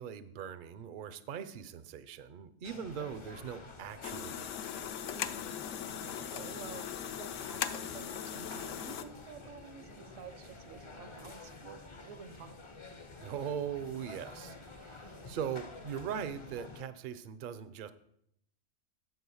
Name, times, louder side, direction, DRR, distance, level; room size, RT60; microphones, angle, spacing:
voice 1, 0.0-4.5 13.2-17.9, right 8 dB, 55° right, 13 dB, 0.6 m, -40 dB
sound 1, 2.6-16.8, left 3 dB, 30° left, 0.6 m, -50 dB
sound 2, 4.0-9.0, left 9 dB, 70° left, 0.9 m, -39 dB
voice 2, 5.1-5.6 6.2-12.6, right 6 dB, 80° right, 10 dB, 1.2 m, -50 dB
10.0 x 4.6 x 7.1 m, 0.75 s
omnidirectional pair, 1.4 m